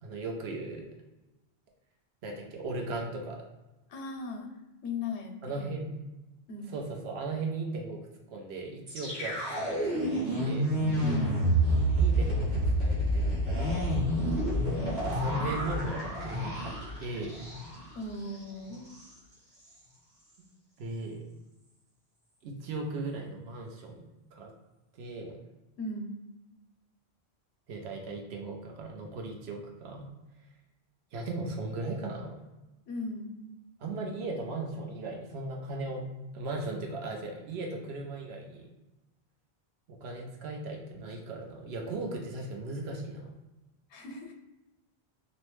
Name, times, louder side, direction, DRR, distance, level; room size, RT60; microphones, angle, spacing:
voice 1, 0.0-0.9 2.2-3.4 5.4-5.9 6.7-10.8 12.0-14.0 15.0-17.4 20.8-21.2 22.4-24.5 24.9-25.4 27.7-30.1 31.1-32.4 33.8-36.0 36.3-38.7 40.0-43.3, right 2 dB, 70° right, 1 dB, 0.8 m, -37 dB
voice 2, 3.9-4.5 4.8-5.8 6.5-6.7 11.0-11.5 17.9-18.9 25.8-26.1 32.9-33.5 43.9-44.3, left 2 dB, 80° left, 2 dB, 0.8 m, -37 dB
sound 1, 8.9-17.9 18.2-18.4 18.7-19.1, right 1 dB, 45° right, 1.0 m, -29 dB
2.6 x 2.1 x 3.0 m, 1.0 s
omnidirectional pair, 1.1 m